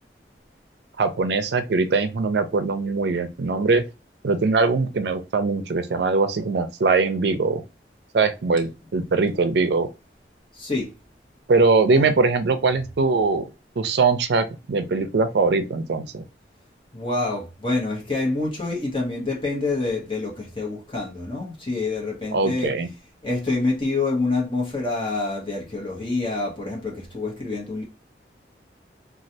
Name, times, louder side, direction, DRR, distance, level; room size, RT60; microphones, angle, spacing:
voice 1, 1.0-3.8 4.2-7.6 8.1-9.9 11.5-13.4 13.8-16.2 22.3-22.9, right 4 dB, 75° right, 0.5 m, -21 dB
voice 2, 10.5-10.9 11.9-12.1 16.9-22.7 23.2-27.8, left 3 dB, 30° left, 1.2 m, -27 dB
3.1 x 2.4 x 2.6 m
head